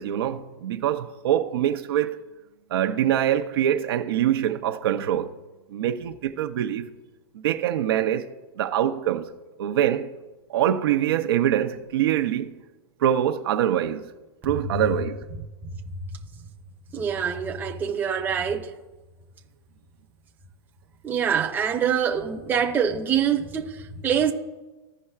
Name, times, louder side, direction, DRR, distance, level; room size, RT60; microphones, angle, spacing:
voice 1, 0.0-2.2 2.7-5.3 5.7-6.9 7.4-8.3 8.6-9.3 9.6-10.1 10.5-12.5 13.0-14.1 14.4-15.2, right 11 dB, 70° right, 0.7 m, -24 dB
voice 2, 16.9-18.7 21.0-24.3, right 8 dB, 15° right, 0.8 m, -25 dB
15.5 x 5.5 x 2.4 m
supercardioid pair, 155°, 13 cm